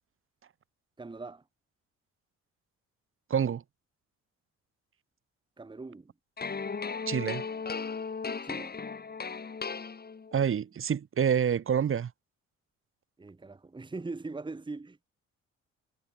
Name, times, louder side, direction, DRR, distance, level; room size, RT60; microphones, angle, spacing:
voice 1, 1.0-1.4 5.6-6.1 8.4-8.8 13.2-15.0, right 3 dB, 15° right, 1.3 m, -41 dB
voice 2, 3.3-3.6 7.1-7.4 10.3-12.1, right 8 dB, 45° right, 1.3 m, -27 dB
sound 1, 6.4-10.5, left 5 dB, 30° left, 3.4 m, -36 dB
cardioid pair, 90°, 30 cm